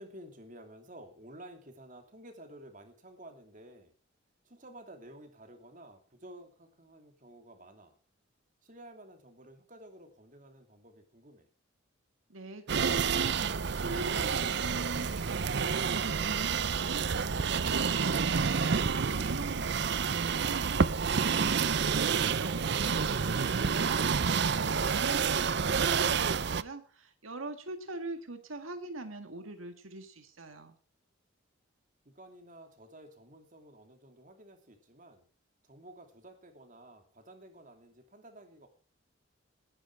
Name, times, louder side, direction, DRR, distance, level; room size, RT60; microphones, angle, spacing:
voice 1, 0.0-3.9 4.4-7.9 8.6-11.5 32.0-35.3 35.6-38.7, right 1 dB, 40° right, 5 dB, 2.8 m, -52 dB
voice 2, 12.3-13.4 13.7-30.8, right 2 dB, 80° right, 7 dB, 1.7 m, -43 dB
sound 1, 12.7-26.6, right 6 dB, 55° right, 0.6 m, -29 dB
sound 2, 15.7-20.2 20.6-21.2, left 2 dB, 55° left, 0.8 m, -50 dB
18.5 x 10.0 x 4.8 m, 0.38 s
head